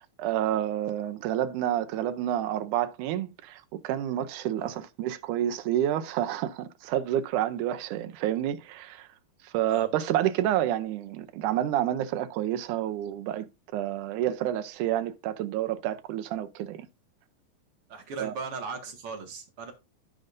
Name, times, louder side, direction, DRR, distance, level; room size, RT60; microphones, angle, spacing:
voice 1, 0.0-9.1 9.4-16.9 18.2-18.3, right 12 dB, 75° right, 2.0 m, -29 dB
voice 2, 17.9-19.7, right 5 dB, 45° right, 2.4 m, -38 dB
15.5 x 5.2 x 2.6 m
omnidirectional pair, 3.9 m